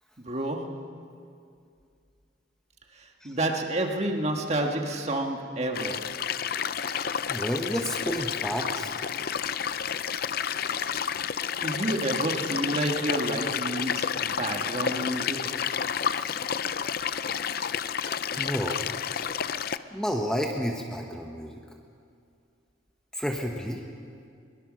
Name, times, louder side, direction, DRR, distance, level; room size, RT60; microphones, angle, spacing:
voice 1, 0.2-0.9 3.2-6.1 11.6-15.5, right 1 dB, 35° right, 2 dB, 1.8 m, -29 dB
sound 1, 5.7-19.8, left 7 dB, 50° left, 0.5 m, -30 dB
voice 2, 7.3-9.0 16.1-16.4 18.3-18.9 19.9-21.6 23.1-23.8, equal, 5° left, 1 dB, 1.2 m, -31 dB
22.5 x 22.0 x 6.4 m, 2.4 s
head